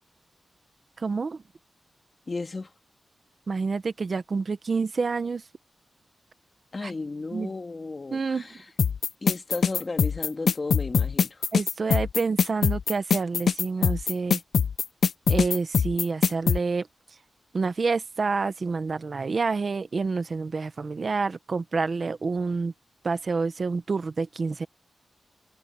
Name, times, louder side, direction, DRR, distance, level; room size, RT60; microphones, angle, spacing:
voice 1, 1.0-1.4 3.5-5.4 6.8-6.9 7.3-7.5 8.1-8.4 11.5-14.4 15.3-16.9 17.5-22.7 23.0-24.7, right 4 dB, 40° right, 0.9 m, -28 dB
voice 2, 2.3-2.7 6.7-8.7 9.2-11.5, left 3 dB, 30° left, 1.8 m, -34 dB
sound 1, 8.8-16.6, left 6 dB, 65° left, 0.4 m, -22 dB
wide cardioid pair, 165°, 0 cm